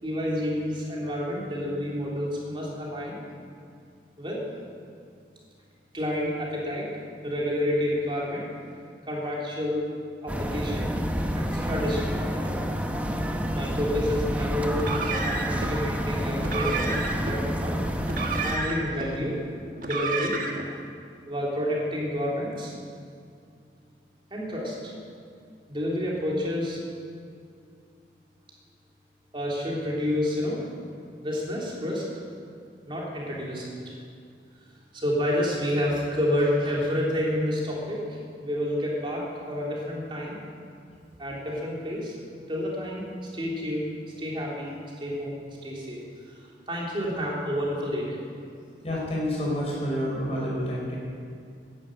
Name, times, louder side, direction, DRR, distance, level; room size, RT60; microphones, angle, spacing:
voice 1, 0.0-3.2 4.2-4.4 5.9-6.9 7.2-8.4 9.0-9.9 10.2-10.9 11.4-12.6 13.5-14.9 15.2-17.8 18.3-19.5 19.8-20.4 21.3-22.7 24.3-24.9 25.7-26.8 29.3-30.8 31.2-32.1 32.9-34.0 34.9-40.4 41.2-42.2 42.5-43.9 44.2-48.2, left 1 dB, 30° right, -4 dB, 3.5 m, -29 dB
sound 1, 10.3-18.6, equal, 10° right, 1.0 m, -29 dB
Car, 14.7-15.7 16.4-17.3 18.0-19.1 19.8-20.7, right 3 dB, 45° right, 1.5 m, -31 dB
voice 2, 48.8-51.0, equal, 35° left, -4 dB, 5.3 m, -28 dB
14.5 x 11.0 x 8.9 m, 2.4 s
head